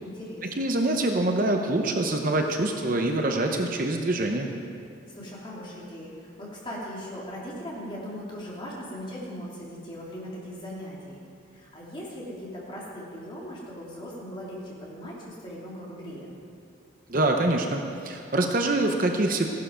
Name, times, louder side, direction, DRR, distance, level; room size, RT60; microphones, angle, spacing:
voice 1, 0.0-0.7 5.1-11.2 11.5-16.3, equal, 25° left, -5 dB, 3.0 m, -39 dB
voice 2, 0.6-4.5 17.1-19.5, right 2 dB, 45° right, 3 dB, 0.8 m, -25 dB
15.5 x 11.5 x 5.1 m, 2.3 s
head